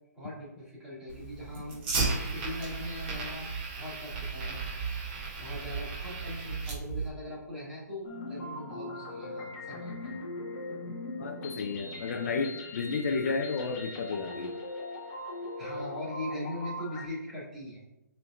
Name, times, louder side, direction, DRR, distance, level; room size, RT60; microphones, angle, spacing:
voice 1, 0.2-1.9 2.2-3.5 3.7-4.8 5.2-10.2 15.6-17.8, left 1 dB, 5° right, -8 dB, 2.2 m, -41 dB
Fire, 1.1-7.1, right 4 dB, 35° right, 2.2 m, -34 dB
sound 1, 8.0-17.1, left 2 dB, 25° left, 1.5 m, -40 dB
voice 2, 11.2-14.5, left 4 dB, 50° left, 5 dB, 0.6 m, -32 dB
9.4 x 4.5 x 2.5 m, 0.94 s
hypercardioid pair, 150°, 10 cm